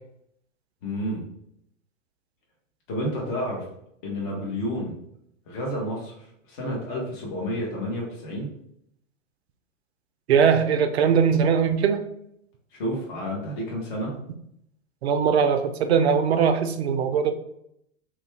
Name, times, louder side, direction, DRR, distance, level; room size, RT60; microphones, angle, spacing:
voice 1, 0.8-1.2 2.9-3.6 4.0-5.0 5.5-8.5 12.7-14.1, equal, 40° left, -2 dB, 1.1 m, -30 dB
voice 2, 10.3-12.0 15.0-17.3, right 7 dB, 55° right, 7 dB, 0.5 m, -20 dB
2.8 x 2.3 x 3.2 m, 0.74 s
figure-of-eight pair, 105°, 39 cm